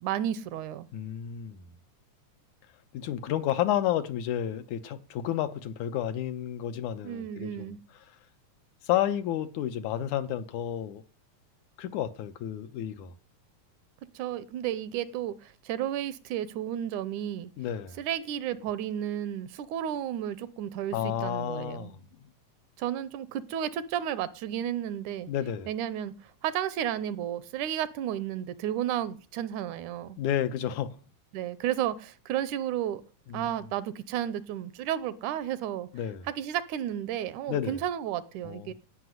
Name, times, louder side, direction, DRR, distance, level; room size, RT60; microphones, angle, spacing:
voice 1, 0.0-0.9 7.0-7.8 14.2-17.5 18.0-21.9 22.8-25.3 25.7-26.1 26.4-30.2 31.3-33.0 33.3-35.9 36.3-38.7, right 11 dB, 75° right, 2.1 m, -32 dB
voice 2, 0.9-1.6 2.9-7.8 8.8-11.0 11.8-13.1 17.6-18.0 20.9-22.0 25.3-25.7 30.2-31.0 33.3-33.5 35.9-36.2 37.5-37.8 38.4-38.7, left 11 dB, 80° left, 2.2 m, -31 dB
16.0 x 5.9 x 9.3 m
omnidirectional pair, 3.6 m